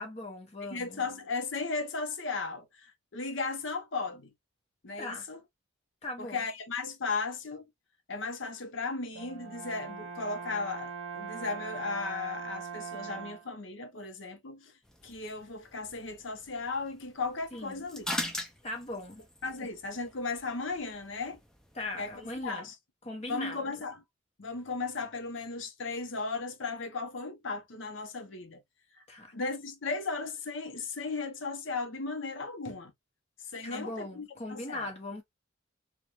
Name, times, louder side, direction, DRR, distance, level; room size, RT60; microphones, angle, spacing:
voice 1, 0.0-1.0 5.0-5.2 6.0-6.4 17.5-17.8 18.6-19.2 19.6-19.7 21.7-22.7 23.0-23.6 29.1-29.3 33.6-35.2, left 2 dB, 30° left, 0.8 m, -39 dB
voice 2, 0.6-4.3 4.8-5.4 6.2-7.6 8.1-14.7 15.0-18.1 19.4-21.4 22.0-22.7 23.3-24.0 24.4-28.6 29.3-32.9 33.4-34.9, left 4 dB, 65° left, 0.6 m, -36 dB
Brass instrument, 9.1-13.6, right 6 dB, 60° right, 0.6 m, -41 dB
sound 1, 14.8-22.5, left 1 dB, 5° left, 0.3 m, -43 dB
2.3 x 2.1 x 2.8 m
head